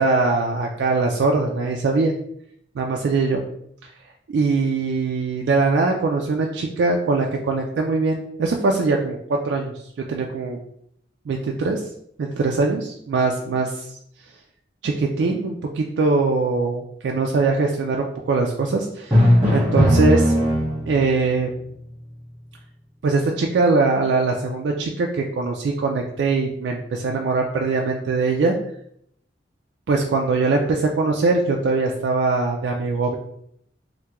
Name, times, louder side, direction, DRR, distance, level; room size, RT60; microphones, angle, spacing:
voice 1, 0.0-2.1 2.8-3.4 4.3-9.7 10.1-10.6 11.3-11.8 12.2-13.9 14.8-20.3 20.9-21.5 23.0-28.5 29.9-33.2, right 3 dB, 75° right, 1 dB, 0.3 m, -22 dB
Drum, 19.1-21.1, equal, 10° right, 1.2 m, -17 dB
3.4 x 2.2 x 2.9 m, 0.71 s
head